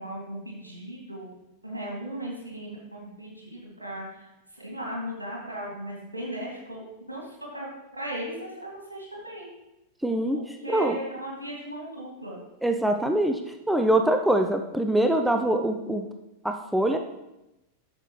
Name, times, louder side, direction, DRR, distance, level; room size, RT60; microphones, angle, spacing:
voice 1, 0.0-4.2 4.5-6.8 7.1-9.5 10.6-12.4, right 1 dB, 80° right, -3 dB, 2.6 m, -37 dB
voice 2, 10.0-11.0 12.6-13.4 13.7-16.0 16.4-17.0, right 1 dB, 5° right, 5 dB, 0.5 m, -24 dB
9.6 x 6.8 x 3.2 m, 0.92 s
figure-of-eight pair, 90°, 0 cm